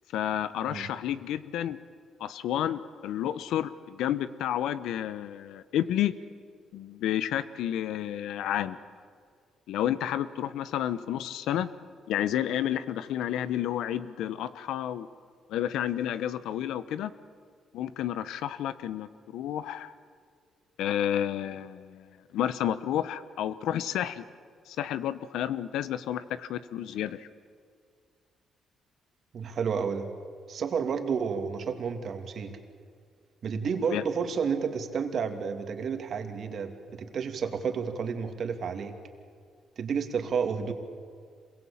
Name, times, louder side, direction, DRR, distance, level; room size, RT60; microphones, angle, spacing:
voice 1, 0.1-1.8 2.2-6.1 6.7-8.8 9.7-11.7 12.1-15.1 15.5-17.1 17.7-19.9 20.8-24.2 24.7-27.3 33.9-34.0, left 11 dB, 80° left, 14 dB, 1.0 m, -30 dB
voice 2, 29.3-30.1 30.5-32.6 33.4-38.9 39.8-40.7, right 6 dB, 60° right, 6 dB, 2.7 m, -31 dB
26.5 x 22.5 x 8.8 m, 2.1 s
cardioid pair, 80°, 0 cm